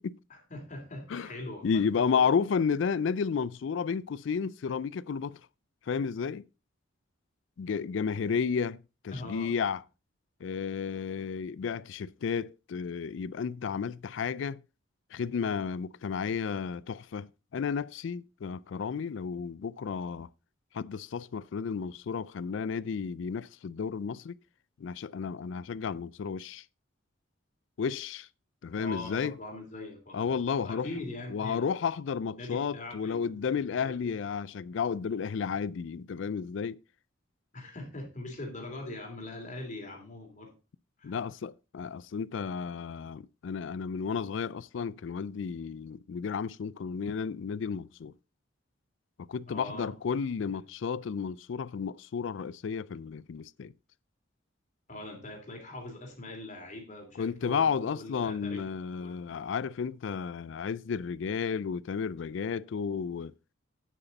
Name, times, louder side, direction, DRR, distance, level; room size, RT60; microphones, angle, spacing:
voice 1, 0.3-2.3 9.1-9.5 28.7-30.4 30.6-31.6 32.3-33.9 37.5-40.5 41.0-41.2 49.5-49.9 50.5-50.6 54.9-58.6 59.0-59.2, left 2 dB, 40° left, 3.0 m, -42 dB
voice 2, 1.6-5.4 5.9-6.4 7.6-9.8 10.4-14.6 15.1-20.3 20.7-24.3 24.8-26.6 27.8-28.3 28.6-29.3 30.1-30.9 31.3-36.8 41.0-48.1 49.3-53.7 57.2-63.3, left 6 dB, 65° left, 0.4 m, -32 dB
9.2 x 8.0 x 4.0 m
head